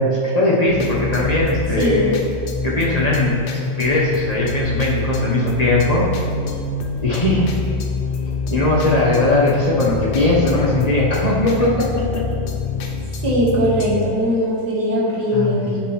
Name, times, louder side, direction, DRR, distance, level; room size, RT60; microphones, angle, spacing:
voice 1, 0.0-2.2 2.6-6.1 7.0-7.8 8.5-12.2 15.3-15.7, left 2 dB, 30° left, -5 dB, 0.7 m, -19 dB
sound 1, 0.7-14.1, left 4 dB, 70° left, 1.2 m, -26 dB
voice 2, 1.8-2.2 13.2-15.8, equal, 60° right, -5 dB, 1.9 m, -20 dB
8.4 x 6.0 x 3.1 m, 2.4 s
omnidirectional pair, 2.0 m